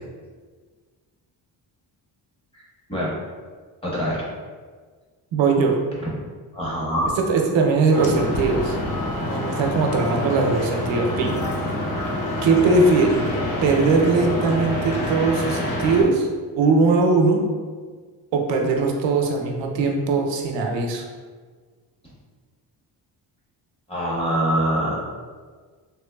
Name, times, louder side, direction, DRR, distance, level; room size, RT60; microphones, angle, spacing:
voice 1, 3.8-4.2 6.5-7.1 23.9-25.0, equal, 15° left, -6 dB, 0.8 m, -24 dB
voice 2, 5.3-5.8 7.3-8.8 9.2-11.4 12.4-13.2 13.6-16.3 16.5-17.4 18.3-21.0, right 3 dB, 85° right, 2 dB, 0.6 m, -20 dB
sound 1, 7.9-16.0, left 1 dB, 55° left, 0.7 m, -27 dB
3.5 x 3.0 x 2.2 m, 1.5 s
cardioid pair, 150°, 43 cm